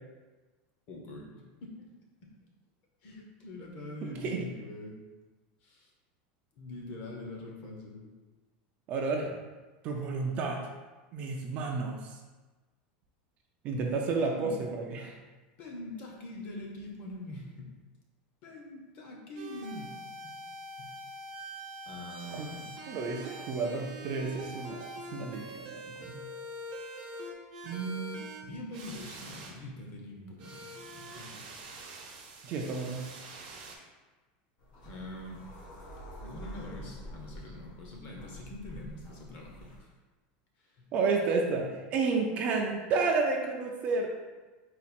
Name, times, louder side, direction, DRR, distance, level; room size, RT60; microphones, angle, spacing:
voice 1, 0.9-1.9 2.2-2.3 3.0-5.0 5.6-5.9 6.6-8.1 14.1-14.5 15.6-17.7 18.4-19.9 20.8-20.9 21.4-21.5 21.9-22.7 27.6-27.8 28.4-31.4 34.9-35.5 36.2-39.9 40.6-40.8, left 1 dB, 35° left, -1 dB, 0.7 m, -44 dB
voice 2, 4.2-4.5 8.9-9.4 9.8-10.7 11.1-12.1 13.6-15.1 22.3-22.5 22.9-24.8 25.1-26.2 27.6-28.2 32.4-33.0 40.9-44.1, right 4 dB, 30° right, 1 dB, 0.3 m, -31 dB
sound 1, 19.3-28.4 28.7-29.5 30.4-33.8, right 1 dB, 70° right, 0.8 m, -44 dB
sound 2, 34.6-39.8, equal, 60° left, 1.3 m, -47 dB
4.1 x 2.4 x 4.2 m, 1.2 s
supercardioid pair, 180°, 5 cm